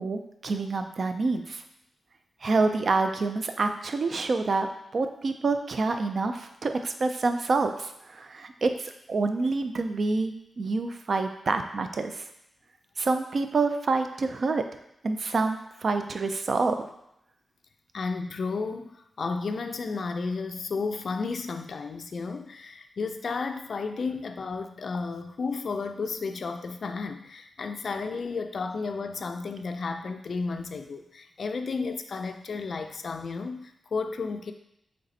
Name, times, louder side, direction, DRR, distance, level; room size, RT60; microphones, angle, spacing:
voice 1, 0.0-1.6 2.4-4.7 4.9-12.3 13.0-14.6 15.0-16.9, right 3 dB, 50° right, 7 dB, 0.4 m, -27 dB
voice 2, 17.9-34.5, left 4 dB, 55° left, 7 dB, 0.3 m, -33 dB
4.0 x 3.3 x 4.1 m, 0.80 s
wide cardioid pair, 125°, 0 cm